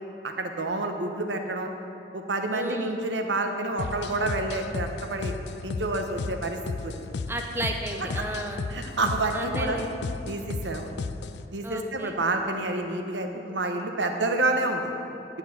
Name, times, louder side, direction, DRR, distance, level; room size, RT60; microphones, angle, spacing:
voice 1, 0.2-1.7 2.1-5.3 5.6-6.6 6.8-6.9 8.7-9.8 10.3-10.9 11.5-14.9, right 2 dB, 90° right, 5 dB, 1.0 m, -28 dB
voice 2, 2.5-3.0 7.3-8.7 9.3-9.9 11.6-12.2, right 1 dB, 15° right, 2 dB, 0.7 m, -33 dB
sound 1, 3.8-11.5, left 4 dB, 75° left, 0.4 m, -34 dB
9.9 x 6.1 x 7.8 m, 2.9 s
head